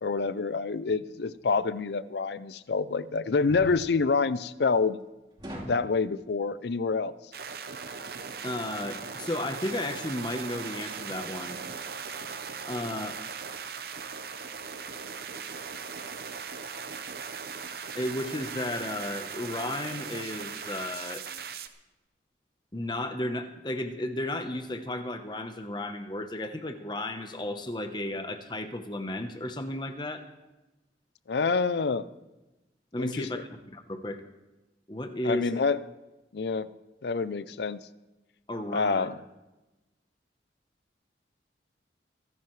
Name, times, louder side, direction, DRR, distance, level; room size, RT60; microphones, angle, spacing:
voice 1, 0.0-5.0 5.7-7.1 31.3-32.1 33.0-33.3 35.2-35.8 36.3-36.7 37.0-37.8 38.7-39.2, left 4 dB, 70° left, 16 dB, 0.5 m, -27 dB
sound 1, 1.3-1.6 3.5-3.8 5.4-5.9, equal, 25° right, 3.8 m, -40 dB
sound 2, 7.3-21.7, right 6 dB, 55° right, 0.8 m, -39 dB
voice 2, 8.4-11.6 12.6-13.2 17.9-21.2 22.7-30.2 32.9-34.2 34.9-35.6 38.5-39.1, left 1 dB, 25° left, 7 dB, 1.0 m, -34 dB
25.5 x 10.5 x 3.2 m, 1.1 s
head